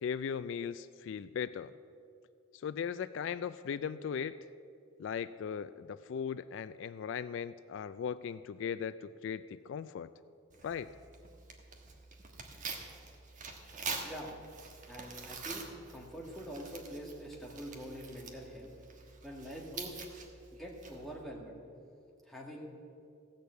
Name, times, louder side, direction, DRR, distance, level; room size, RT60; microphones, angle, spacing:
voice 1, 0.0-1.7 2.5-4.4 5.0-10.1 10.6-10.9, left 7 dB, 65° left, 15 dB, 0.3 m, -38 dB
Tearing, 10.5-21.2, right 4 dB, 40° right, 1.3 m, -46 dB
voice 2, 14.9-18.7 19.2-20.1 20.5-21.6 22.3-22.7, equal, ahead, -3 dB, 1.9 m, -45 dB
15.5 x 6.6 x 8.1 m, 2.5 s
head